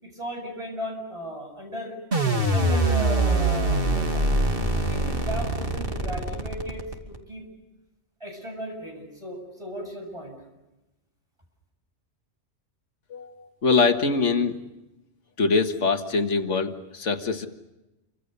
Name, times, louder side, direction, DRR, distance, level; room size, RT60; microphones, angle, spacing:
voice 1, 0.0-1.9 2.5-4.3 4.7-7.4 8.2-10.4, equal, 25° right, 2 dB, 7.8 m, -36 dB
sound 1, 2.1-7.2, right 2 dB, 50° right, 2.9 m, -24 dB
voice 2, 13.1-14.6 15.4-17.5, left 4 dB, 90° left, 7 dB, 1.9 m, -23 dB
27.5 x 25.0 x 6.8 m, 0.99 s
omnidirectional pair, 1.2 m